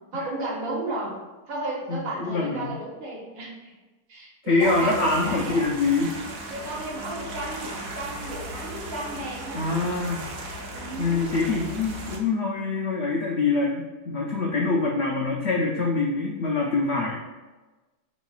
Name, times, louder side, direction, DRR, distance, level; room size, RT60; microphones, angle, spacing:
voice 1, 0.1-1.1 1.5-3.7 4.1-5.7 6.5-9.9 10.7-11.3, right 2 dB, 65° right, -4 dB, 1.3 m, -33 dB
voice 2, 1.9-2.7 4.5-6.1 9.5-10.2 11.0-17.2, left 3 dB, 75° left, -2 dB, 0.6 m, -25 dB
sound 1, 4.6-12.2, right 1 dB, 80° right, 1.2 m, -37 dB
4.9 x 3.1 x 2.3 m, 1.2 s
omnidirectional pair, 1.7 m